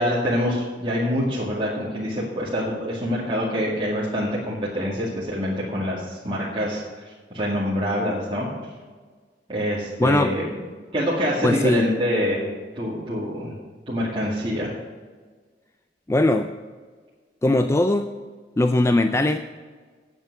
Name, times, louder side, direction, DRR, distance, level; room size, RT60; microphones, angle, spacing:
voice 1, 0.0-8.5 9.5-10.4 10.9-12.5 12.8-13.6 13.9-14.7, equal, 30° right, -8 dB, 2.2 m, -25 dB
voice 2, 10.0-10.3 11.4-11.9 16.1-16.5 17.4-18.1 18.6-19.4, left 2 dB, 15° left, 8 dB, 0.4 m, -19 dB
9.3 x 7.5 x 8.2 m, 1.5 s
head